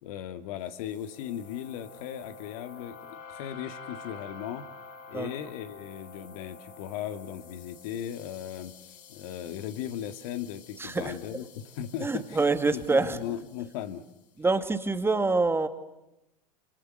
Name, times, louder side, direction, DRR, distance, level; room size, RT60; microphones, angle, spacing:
voice 1, 0.0-4.7 5.1-8.7 9.1-12.4 12.7-14.0, left 10 dB, 60° left, 9 dB, 2.0 m, -37 dB
sound 1, 0.7-14.1, left 5 dB, 40° left, 6.3 m, -49 dB
voice 2, 10.8-11.2 12.0-13.2 14.4-15.7, right 3 dB, 10° right, 9 dB, 2.1 m, -26 dB
27.5 x 27.0 x 6.6 m, 0.92 s
hypercardioid pair, 95°, 21 cm